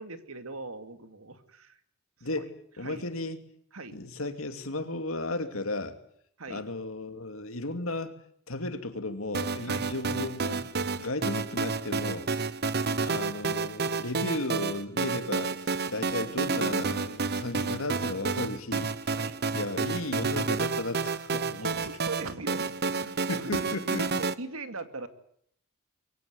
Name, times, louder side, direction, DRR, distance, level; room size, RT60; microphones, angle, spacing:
voice 1, 0.0-1.8 2.2-2.5 2.8-3.0 3.7-4.0 6.4-6.6 9.7-9.9 19.1-19.4 21.4-24.1 24.4-25.1, right 3 dB, 85° right, 9 dB, 2.4 m, -41 dB
voice 2, 2.8-3.4 3.9-6.0 6.5-8.1 8.5-10.7 11.0-12.3 13.0-19.2 19.5-21.7 23.3-24.1, left 2 dB, 70° left, 8 dB, 2.7 m, -34 dB
sound 1, 9.3-24.3, right 4 dB, 50° right, 1.0 m, -30 dB
23.0 x 17.0 x 9.5 m, 0.68 s
head